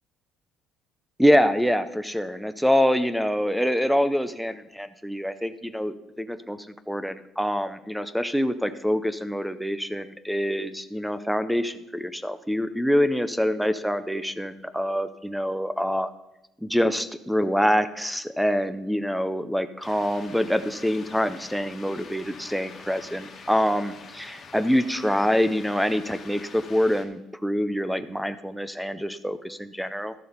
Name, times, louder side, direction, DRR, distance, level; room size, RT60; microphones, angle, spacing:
voice 1, 1.2-16.1 16.6-30.1, equal, ahead, 12 dB, 0.5 m, -25 dB
sound 1, 19.8-27.0, left 5 dB, 35° left, 1.5 m, -45 dB
13.0 x 6.9 x 5.1 m, 0.89 s
cardioid pair, 160°, 0 cm